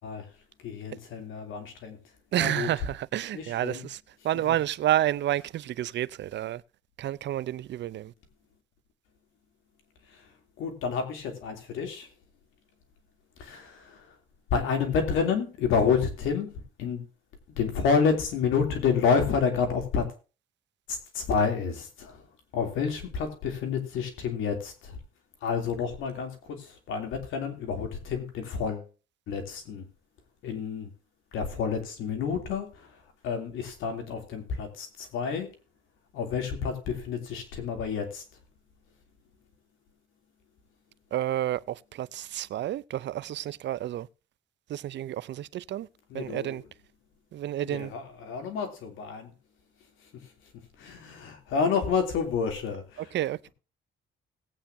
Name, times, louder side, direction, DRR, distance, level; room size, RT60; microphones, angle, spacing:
voice 1, 0.0-0.3 0.6-2.0 2.4-2.7 3.3-3.9 4.5-4.6 10.0-12.1 13.4-14.2 14.5-17.0 17.5-20.1 20.9-22.3 22.5-25.0 25.4-28.9 29.3-29.9 30.4-30.9 31.3-35.5 36.1-38.2 46.1-46.6 47.6-49.3 50.0-53.1, left 6 dB, 90° left, 2.9 m, -29 dB
voice 2, 2.3-6.6 7.0-8.1 41.1-44.1 44.7-45.9 46.1-46.6 47.3-47.9 53.1-53.5, right 12 dB, 65° right, 0.6 m, -30 dB
18.0 x 8.9 x 2.7 m
cardioid pair, 90°, 20 cm